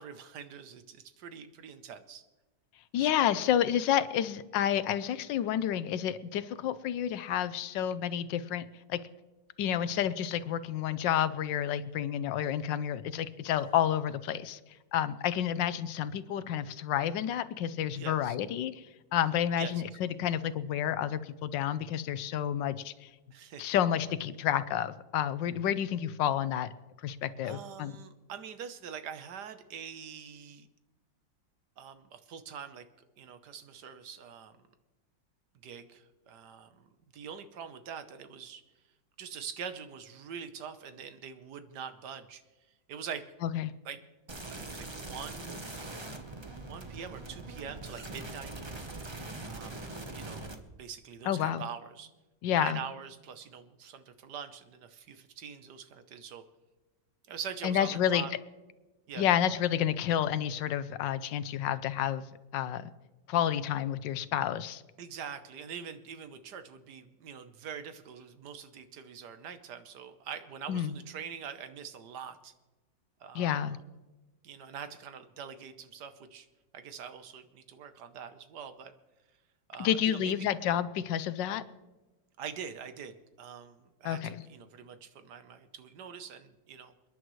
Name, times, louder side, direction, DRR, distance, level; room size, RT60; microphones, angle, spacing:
voice 1, 0.0-2.2 3.0-3.4 13.6-13.8 17.9-18.3 19.6-20.0 23.3-23.8 27.4-30.7 31.8-32.8 33.2-34.6 35.6-38.6 39.2-42.4 42.9-43.2 43.8-44.0 44.5-45.6 46.7-48.5 49.4-49.9 50.1-52.1 52.5-56.4 57.3-58.3 59.1-59.3 65.0-72.5 73.2-73.8 74.4-76.5 76.7-78.9 79.7-80.5 82.4-86.9, right 7 dB, 70° right, 10 dB, 1.4 m, -44 dB
voice 2, 2.9-9.0 9.6-14.6 14.9-18.8 19.1-23.1 23.6-26.7 27.0-27.9 43.4-43.7 51.3-51.6 52.4-52.8 57.6-58.3 59.2-62.3 62.5-62.9 63.3-64.8 70.7-70.9 73.3-73.8 79.8-81.6 84.0-84.3, left 10 dB, 80° left, 14 dB, 1.4 m, -30 dB
sound 1, 44.3-50.5, right 2 dB, 20° right, 0.7 m, -42 dB
28.5 x 10.5 x 3.1 m, 1.1 s
omnidirectional pair, 2.0 m